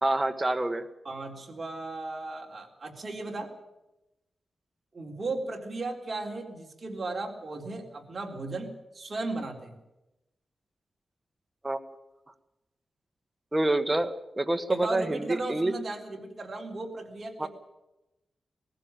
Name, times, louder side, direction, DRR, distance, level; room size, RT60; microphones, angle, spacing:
voice 1, 0.0-0.8 11.6-11.8 13.5-15.7 17.4-17.5, right 2 dB, 15° right, 7 dB, 1.4 m, -27 dB
voice 2, 1.0-3.5 4.9-9.8 14.7-17.5, right 2 dB, 35° right, 1 dB, 3.8 m, -36 dB
19.5 x 15.0 x 9.0 m, 0.94 s
wide cardioid pair, 150°, 0 cm